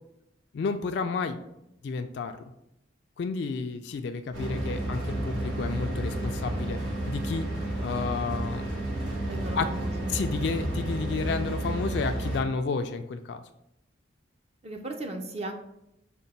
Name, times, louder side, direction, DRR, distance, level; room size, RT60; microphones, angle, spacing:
voice 1, 0.5-1.4 1.8-2.4 3.2-6.8 7.1-7.5 7.8-8.6 9.5-9.7 10.1-13.4, left 4 dB, 60° left, 7 dB, 0.3 m, -31 dB
sound 1, 4.3-12.4, right 1 dB, 85° right, 1.3 m, -31 dB
voice 2, 9.2-10.2 14.6-15.5, right 1 dB, 35° right, 3 dB, 0.4 m, -36 dB
5.2 x 2.2 x 4.0 m, 0.83 s
head